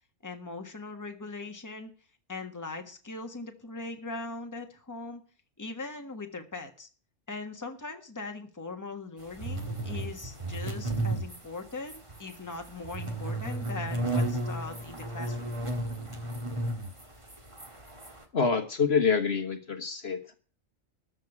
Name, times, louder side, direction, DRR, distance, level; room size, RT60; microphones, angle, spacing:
voice 1, 0.2-1.9 2.3-5.2 5.6-6.9 7.3-15.6, left 3 dB, 15° left, 5 dB, 1.5 m, -40 dB
sound 1, 9.3-18.2, right 1 dB, 25° right, 1.9 m, -34 dB
voice 2, 18.3-20.3, left 5 dB, 55° left, 8 dB, 1.5 m, -26 dB
13.5 x 5.2 x 8.8 m, 0.39 s
omnidirectional pair, 1.3 m